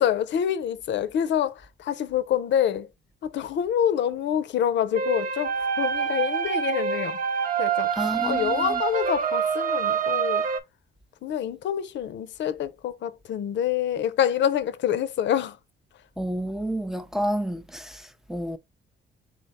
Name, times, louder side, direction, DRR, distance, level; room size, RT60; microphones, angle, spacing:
voice 1, 0.0-2.9 3.2-7.2 7.6-10.4 11.2-15.6, left 9 dB, 65° left, 0.6 m, -26 dB
sound 1, 4.9-10.6, right 7 dB, 45° right, 0.6 m, -26 dB
voice 2, 8.0-8.8 16.2-18.6, right 1 dB, ahead, 0.5 m, -30 dB
4.4 x 2.2 x 4.1 m
cardioid pair, 90°, 20 cm